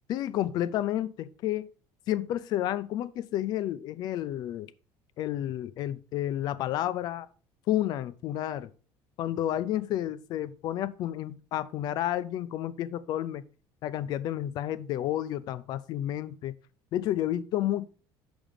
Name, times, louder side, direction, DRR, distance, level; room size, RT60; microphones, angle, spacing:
voice 1, 0.1-1.7 2.1-4.7 5.2-7.3 7.7-8.7 9.2-13.4 13.8-16.5 16.9-17.9, left 12 dB, 50° left, 0.5 m, -31 dB
6.2 x 5.2 x 5.5 m
cardioid pair, 165°, 9 cm